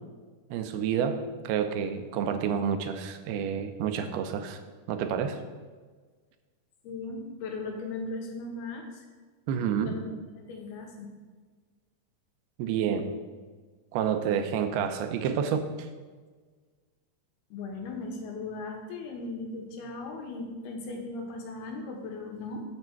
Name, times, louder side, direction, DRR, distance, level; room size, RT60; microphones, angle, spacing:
voice 1, 0.5-1.2 1.4-4.6 4.9-5.4 9.5-10.0 12.6-13.1 13.9-15.6, right 8 dB, 80° right, 8 dB, 2.6 m, -29 dB
voice 2, 6.8-9.1 9.6-11.1 17.5-22.6, left 3 dB, 80° left, 2 dB, 3.2 m, -38 dB
8.4 x 7.8 x 4.5 m, 1.4 s
omnidirectional pair, 4.5 m